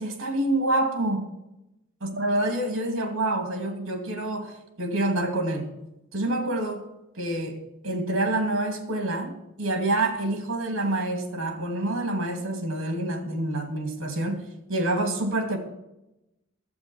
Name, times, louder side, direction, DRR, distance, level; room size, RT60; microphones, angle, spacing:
voice 1, 0.0-1.3 2.0-5.7 6.1-6.9 7.2-14.4 14.7-15.6, right 1 dB, 65° right, 5 dB, 2.5 m, -27 dB
11.5 x 8.2 x 7.0 m, 0.90 s
head